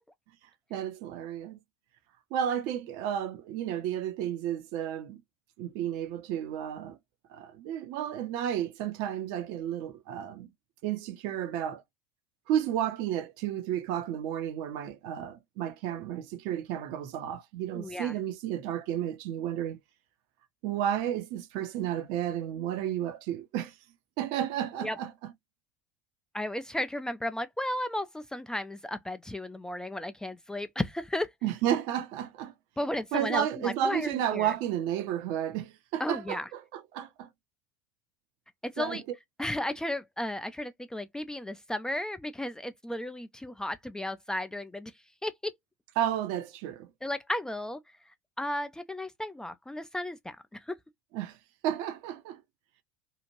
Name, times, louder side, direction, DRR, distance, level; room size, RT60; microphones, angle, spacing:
voice 1, 0.7-1.6 2.3-5.2 5.6-7.0 7.3-10.5 10.8-11.8 12.5-19.8 20.6-23.7 24.2-25.3 31.4-32.5 33.1-37.3 38.8-39.0 46.0-46.9 51.1-51.4 51.6-52.4, right 10 dB, 55° right, 0.7 m, -32 dB
voice 2, 17.7-18.2 24.8-25.0 26.3-31.3 32.8-34.5 36.0-36.5 38.8-39.0 39.4-44.9 45.2-45.5 47.0-47.8 48.4-50.7, left 1 dB, 5° left, 0.4 m, -34 dB
2.8 x 2.4 x 3.0 m
figure-of-eight pair, 75°, 10 cm